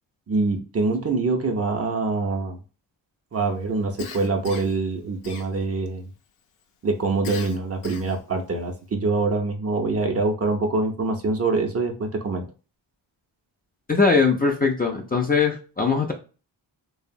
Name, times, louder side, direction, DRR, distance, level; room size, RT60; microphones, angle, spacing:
voice 1, 0.3-2.6 3.3-6.1 6.8-12.4, right 3 dB, 30° right, 4 dB, 0.5 m, -25 dB
Cough, 4.0-4.8 5.2-5.9 7.2-8.3, left 5 dB, 80° left, 0.6 m, -37 dB
voice 2, 13.9-16.1, left 4 dB, 20° left, 1 dB, 0.4 m, -21 dB
2.7 x 2.0 x 2.5 m, 0.34 s
cardioid pair, 60°, 47 cm